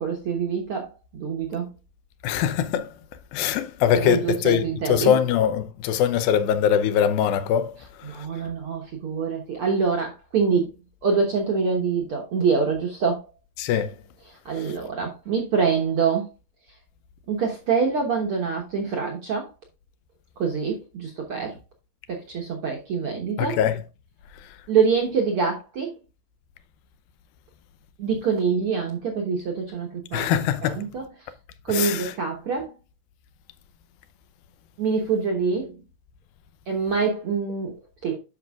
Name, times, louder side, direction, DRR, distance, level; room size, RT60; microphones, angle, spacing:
voice 1, 0.0-1.7 3.9-5.1 8.0-10.7 11.0-13.2 14.3-16.3 17.3-19.5 20.4-21.6 22.1-23.6 24.7-25.9 28.0-30.3 30.6-31.3 31.6-32.7 34.8-35.8 36.7-38.2, right 5 dB, 60° right, 1.4 m, -25 dB
voice 2, 2.2-2.9 3.3-7.7 13.6-13.9 23.4-23.8 30.1-30.9 31.7-32.1, left 9 dB, 90° left, 2.6 m, -22 dB
9.9 x 6.1 x 2.3 m
omnidirectional pair, 4.0 m